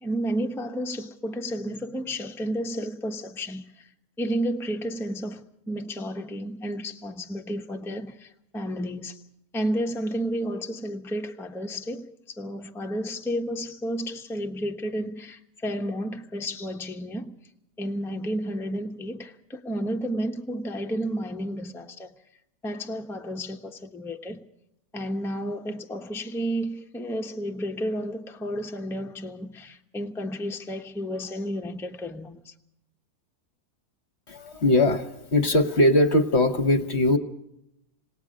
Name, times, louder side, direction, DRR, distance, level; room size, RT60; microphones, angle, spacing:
voice 1, 0.0-3.9 4.2-9.2 9.5-17.3 17.8-22.1 22.6-24.4 24.9-32.5, equal, ahead, 0.9 m, -32 dB
voice 2, 34.3-37.2, left 1 dB, 50° left, 1.3 m, -21 dB
27.5 x 18.0 x 5.1 m
omnidirectional pair, 1.6 m